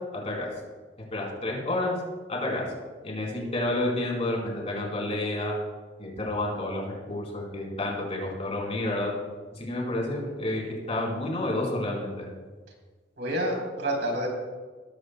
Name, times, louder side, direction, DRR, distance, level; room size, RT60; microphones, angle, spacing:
voice 1, 0.1-0.5 1.1-1.9 2.3-2.6 3.0-5.5 6.0-9.1 9.5-12.3, left 1 dB, 35° left, -3 dB, 4.3 m, -30 dB
voice 2, 13.2-14.3, right 1 dB, 70° right, 0 dB, 3.9 m, -29 dB
18.0 x 15.0 x 2.3 m, 1.4 s
head